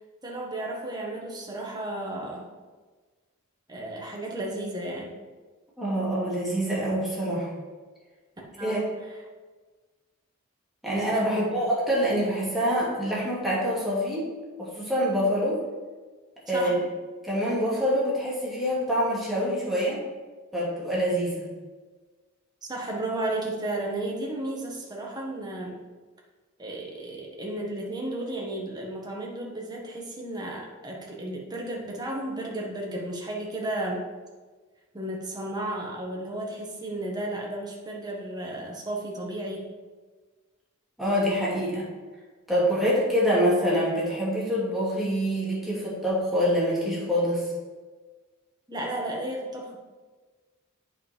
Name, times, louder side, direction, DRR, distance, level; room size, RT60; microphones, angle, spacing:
voice 1, 0.2-2.5 3.7-5.1 8.6-8.9 11.2-11.6 16.5-16.8 22.6-25.8 26.6-34.0 34.9-39.7 48.7-49.8, right 1 dB, 20° right, -2 dB, 1.5 m, -33 dB
voice 2, 5.8-7.5 8.6-8.8 10.8-14.3 14.6-15.6 16.5-16.9 17.2-20.0 20.5-21.5 41.0-41.9 42.5-47.4, equal, ahead, -7 dB, 2.6 m, -25 dB
8.4 x 5.5 x 4.5 m, 1.4 s
head